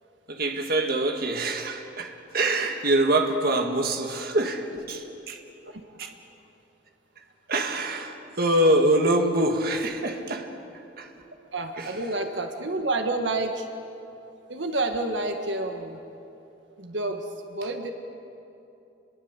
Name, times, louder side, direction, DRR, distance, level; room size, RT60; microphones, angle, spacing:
voice 1, 0.3-5.4 6.0-6.1 7.5-10.6 11.0-11.3 11.8-12.0, right 1 dB, 55° right, 4 dB, 1.9 m, -25 dB
voice 2, 5.7-6.1 11.5-13.7 14.5-16.0 16.8-17.9, right 2 dB, 75° right, 5 dB, 1.8 m, -29 dB
28.0 x 22.0 x 8.3 m, 2.9 s
head